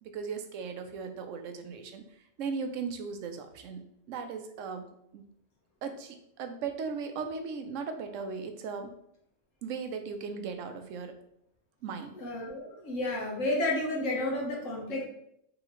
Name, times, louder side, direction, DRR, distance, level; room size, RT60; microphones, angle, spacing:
voice 1, 0.0-2.0 2.4-4.9 5.1-5.2 5.8-8.9 9.6-11.2 11.8-12.2, right 5 dB, 85° right, 7 dB, 1.0 m, -37 dB
voice 2, 12.1-15.0, left 2 dB, 90° left, -3 dB, 1.5 m, -31 dB
4.9 x 3.1 x 3.0 m, 0.74 s
omnidirectional pair, 1.3 m